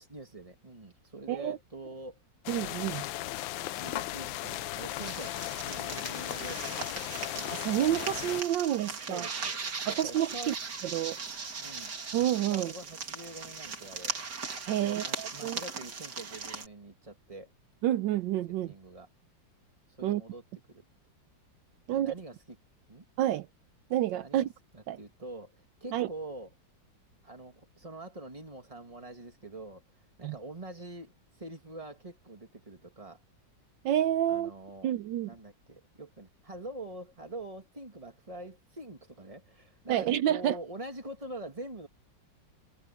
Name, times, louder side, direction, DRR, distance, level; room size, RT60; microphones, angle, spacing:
voice 1, 0.0-2.2 3.6-6.6 8.9-9.6 9.9-10.5 11.6-11.9 12.5-14.2 14.7-17.5 18.7-19.1 19.9-20.4 20.7-20.9 21.9-22.6 22.9-23.1 24.2-24.5 24.7-26.5 27.2-29.8 30.2-33.2 34.3-34.9 35.2-41.9, right 2 dB, 20° right, 2.5 m, -45 dB
sound 1, 2.5-8.4, left 15 dB, 85° left, 1.4 m, -36 dB
voice 2, 2.5-3.1 7.4-9.3 9.9-10.5 10.9-11.2 12.1-12.7 14.6-15.6 17.8-18.7 20.0-20.2 21.9-22.1 23.2-23.5 23.9-24.5 24.9-25.0 25.9-26.1 30.2-30.3 33.8-34.5 34.8-35.3 39.9-40.6, right 12 dB, 80° right, 1.3 m, -29 dB
sound 2, 5.0-16.7, right 5 dB, 60° right, 2.8 m, -39 dB
omnidirectional pair, 2.0 m